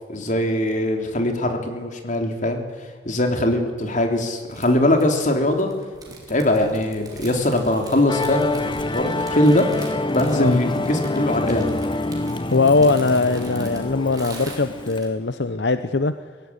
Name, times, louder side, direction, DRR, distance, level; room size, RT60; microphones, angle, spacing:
voice 1, 0.1-2.6 3.1-5.7 6.3-11.7, left 1 dB, 45° left, 4 dB, 3.5 m, -21 dB
sound 1, 4.5-15.1, right 3 dB, 25° right, 5.2 m, -43 dB
Musical instrument, 8.1-15.0, left 2 dB, 30° left, 1.0 m, -27 dB
voice 2, 12.5-16.1, left 3 dB, 80° left, 11 dB, 0.8 m, -20 dB
23.0 x 17.0 x 10.0 m, 1.5 s
head